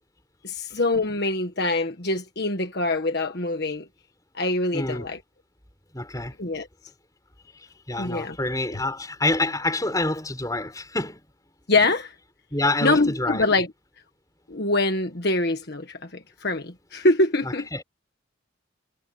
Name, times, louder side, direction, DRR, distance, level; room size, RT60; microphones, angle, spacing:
voice 1, 0.4-3.9 4.3-5.2 6.4-6.7 8.0-8.4 11.7-12.1 12.8-13.7 14.5-17.7, left 2 dB, 55° left, 1.5 m, -24 dB
voice 2, 4.7-5.1 5.9-6.3 7.6-11.2 12.5-13.4 17.4-17.8, left 2 dB, 15° left, 5.6 m, -27 dB
head